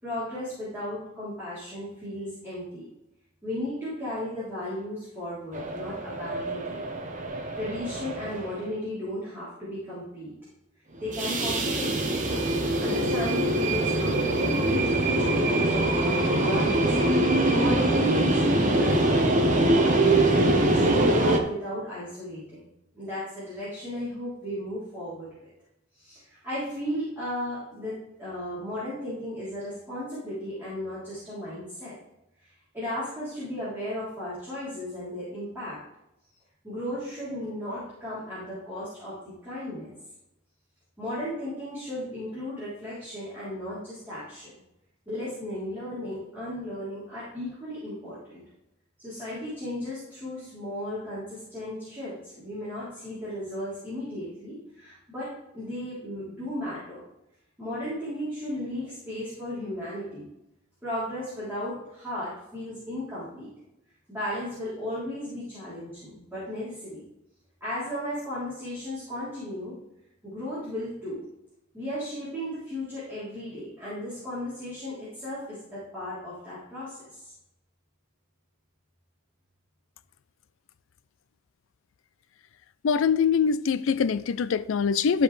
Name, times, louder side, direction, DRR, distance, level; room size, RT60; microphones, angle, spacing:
voice 1, 0.0-2.8 3.4-6.9 7.5-10.3 11.0-16.8 17.5-19.9 20.6-22.7 22.9-25.5 25.9-31.9 32.4-35.8 36.6-39.2 39.4-39.9 41.0-44.5 45.1-48.4 49.0-57.0 57.6-60.2 60.8-63.5 64.1-67.0 67.6-69.8 70.2-71.2 71.7-77.3, left 1 dB, 10° right, 3.3 m, -35 dB
sound 1, 5.5-8.7 11.0-21.4, right 1 dB, 35° right, 1.0 m, -24 dB
voice 2, 82.8-85.2, left 6 dB, 70° left, 0.4 m, -23 dB
12.5 x 5.3 x 3.3 m
head